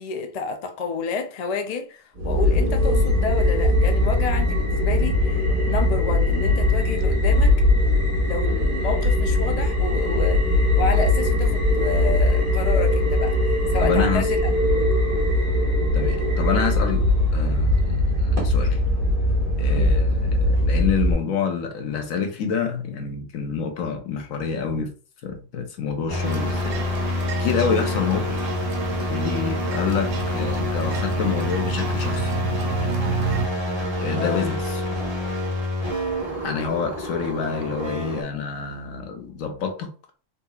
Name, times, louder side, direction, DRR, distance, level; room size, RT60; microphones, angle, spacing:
voice 1, 0.0-7.6 8.2-14.4 14.7-15.0 19.7-20.0 27.7-27.9 34.2-34.5, left 5 dB, 60° left, 0.4 m, -30 dB
sound 1, 2.2-21.1, left 1 dB, 40° right, 1.5 m, -20 dB
voice 2, 13.8-14.2 15.9-17.0 17.3-18.8 19.6-24.9 25.2-26.6 27.0-28.4 29.1-32.3 34.0-34.8 36.4-39.9, left 6 dB, 80° left, 1.2 m, -27 dB
sound 2, 26.1-38.2, left 2 dB, 25° right, 1.0 m, -27 dB
sound 3, 26.2-33.5, right 7 dB, 60° right, 0.6 m, -31 dB
4.1 x 2.7 x 2.3 m
omnidirectional pair, 1.4 m